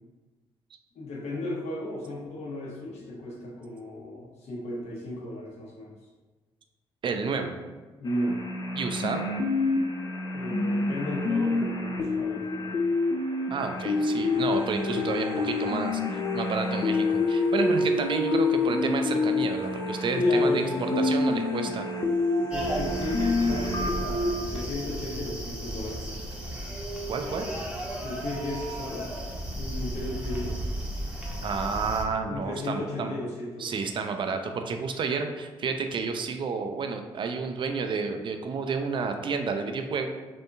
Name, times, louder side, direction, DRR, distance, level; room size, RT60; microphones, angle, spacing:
voice 1, 0.9-5.9 8.0-8.4 10.3-12.9 20.1-21.0 22.4-26.3 28.0-29.1 29.6-30.6 32.3-33.9, left 2 dB, 65° left, -4 dB, 0.8 m, -35 dB
voice 2, 7.0-7.6 8.8-9.3 13.5-21.9 27.1-27.5 31.4-33.1 33.6-40.1, right 5 dB, 45° right, 6 dB, 0.4 m, -30 dB
sound 1, 8.0-24.4, left 3 dB, 35° left, 0.4 m, -27 dB
sound 2, 13.6-26.5, left 1 dB, 85° right, 0.7 m, -37 dB
sound 3, 22.5-32.0, right 1 dB, 10° right, 0.8 m, -34 dB
2.8 x 2.5 x 2.3 m, 1.3 s
hypercardioid pair, 50°, 12 cm